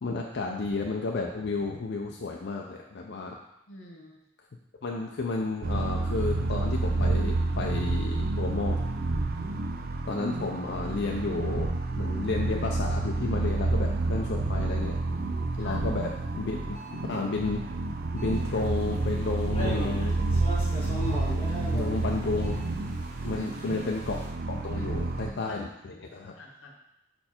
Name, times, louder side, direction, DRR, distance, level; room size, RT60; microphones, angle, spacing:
voice 1, 0.0-3.3 4.8-8.8 10.1-15.0 15.6-16.8 17.1-17.6 18.1-20.2 21.7-22.7 23.2-24.2 24.5-26.3, left 3 dB, 60° left, 0 dB, 0.5 m, -32 dB
voice 2, 3.7-4.2 15.6-15.8 23.3-23.5 24.7-25.6 25.9-26.0 26.3-26.7, equal, 80° left, 1 dB, 1.0 m, -46 dB
sound 1, 5.6-25.3, right 2 dB, 50° right, 0.4 m, -29 dB
sound 2, 16.7-17.1 18.2-18.6 19.6-20.0 21.0-21.4 22.4-22.8, equal, 25° right, 1.7 m, -49 dB
sound 3, 18.4-18.6 19.0-19.2 19.5-22.3 23.0-24.3, equal, 30° left, 1.7 m, -37 dB
5.3 x 4.4 x 4.3 m, 0.87 s
head